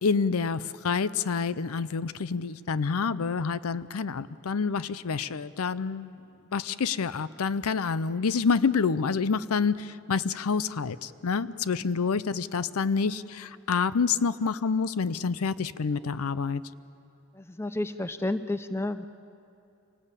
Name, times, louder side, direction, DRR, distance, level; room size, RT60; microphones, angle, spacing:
voice 1, 0.0-6.2 6.5-16.6, left 5 dB, 85° left, 16 dB, 0.6 m, -28 dB
voice 2, 17.3-19.1, left 2 dB, 10° left, 11 dB, 0.5 m, -31 dB
26.5 x 19.0 x 8.3 m, 2.6 s
head